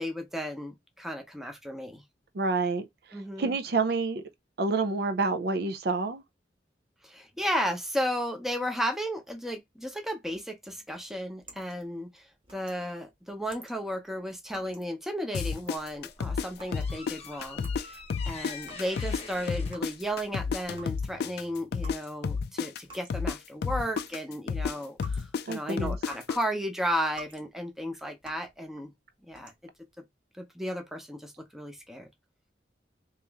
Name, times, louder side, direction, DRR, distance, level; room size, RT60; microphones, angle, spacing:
voice 1, 0.0-2.0 3.1-3.6 7.0-18.0 18.2-28.9 29.3-29.5 30.4-32.1, equal, ahead, 0.7 m, -34 dB
voice 2, 2.3-4.2 4.6-6.2 25.5-26.0, right 3 dB, 60° right, 0.5 m, -28 dB
sound 1, 10.8-20.3 20.6-26.5 26.9-27.5 27.8-28.6 29.2-29.8, right 1 dB, 30° right, 1.0 m, -51 dB
sound 2, 15.3-17.8 18.1-22.0 22.2-26.4, left 5 dB, 60° left, 0.3 m, -31 dB
sound 3, 15.8-21.0, left 5 dB, 35° left, 0.9 m, -45 dB
3.0 x 2.9 x 3.4 m
head